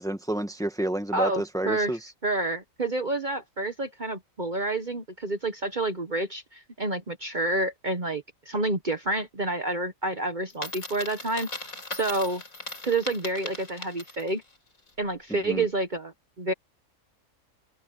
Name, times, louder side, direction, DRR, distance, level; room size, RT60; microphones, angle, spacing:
voice 1, 0.0-2.0 15.5-15.6, right 1 dB, 5° left, 1.5 m, -29 dB
voice 2, 1.1-11.5 11.9-12.4 12.8-14.4 15.0-16.5, right 2 dB, 35° right, 1.3 m, -29 dB
Coin (dropping), 10.5-14.4, left 2 dB, 85° left, 4.8 m, -39 dB
open air
omnidirectional pair, 1.4 m